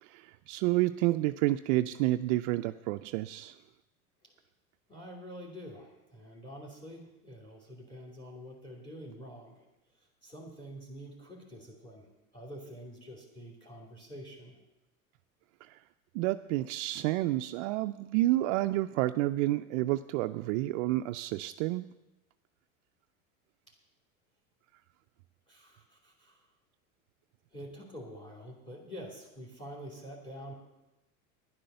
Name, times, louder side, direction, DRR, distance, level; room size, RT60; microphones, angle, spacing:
voice 1, 0.0-3.6 15.6-15.8 16.1-21.9, right 17 dB, 60° right, 9 dB, 0.5 m, -29 dB
voice 2, 4.9-9.6 9.9-14.6 23.7-23.8 25.5-26.5 27.5-30.5, equal, 10° left, 0 dB, 2.7 m, -47 dB
10.5 x 10.0 x 6.7 m, 0.97 s
hypercardioid pair, 100°, 43 cm